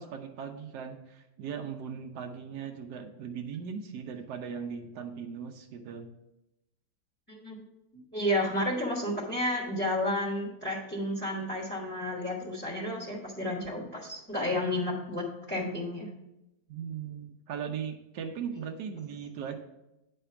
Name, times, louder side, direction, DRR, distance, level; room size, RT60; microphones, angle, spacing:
voice 1, 0.0-6.1 16.7-19.5, right 7 dB, 85° right, 4 dB, 1.3 m, -38 dB
voice 2, 7.9-16.1, left 1 dB, 10° left, -4 dB, 1.0 m, -31 dB
9.2 x 3.4 x 5.6 m, 0.91 s
omnidirectional pair, 1.7 m